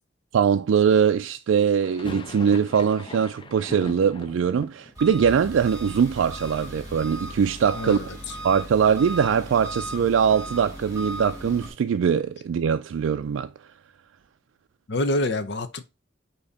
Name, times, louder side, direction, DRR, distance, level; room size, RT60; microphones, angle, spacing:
voice 1, 0.3-8.1 8.4-13.5, right 7 dB, 80° right, 0.3 m, -22 dB
sound 1, 1.8-7.7 8.0-8.8 9.1-9.2 9.4-11.6, left 3 dB, 25° left, 0.4 m, -44 dB
Engine, 4.9-11.7, right 1 dB, 15° right, 2.5 m, -37 dB
voice 2, 7.7-8.1 14.9-15.8, left 1 dB, 60° left, 0.7 m, -26 dB
8.5 x 2.9 x 4.1 m
head